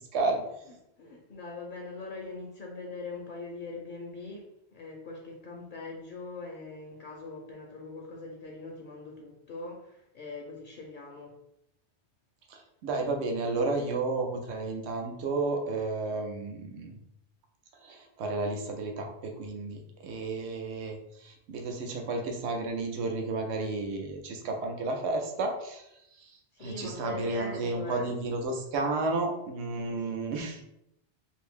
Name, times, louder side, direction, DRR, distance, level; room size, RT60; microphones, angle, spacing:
voice 1, 0.1-0.4 12.5-17.0 17.8-25.9 26.2-30.6, right 3 dB, 85° right, 3 dB, 0.9 m, -32 dB
voice 2, 1.0-11.3 26.5-28.1 29.9-30.1, left 3 dB, 60° left, 0 dB, 0.6 m, -42 dB
2.6 x 2.6 x 3.5 m, 0.81 s
omnidirectional pair, 1.1 m